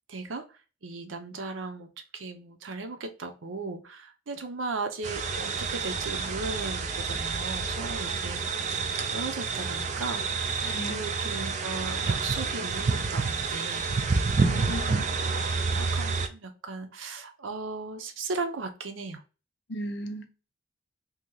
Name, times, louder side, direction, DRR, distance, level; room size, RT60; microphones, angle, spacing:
voice 1, 0.1-8.6 8.9-10.5 10.9-13.8 14.4-15.0 15.3-19.2, right 3 dB, 90° right, 7 dB, 0.7 m, -37 dB
sound 1, 5.0-16.3, right 4 dB, 40° right, 0.4 m, -29 dB
voice 2, 10.6-11.0 14.4-15.1 19.7-20.3, equal, 60° left, 7 dB, 0.6 m, -36 dB
2.9 x 2.8 x 3.8 m, 0.33 s
head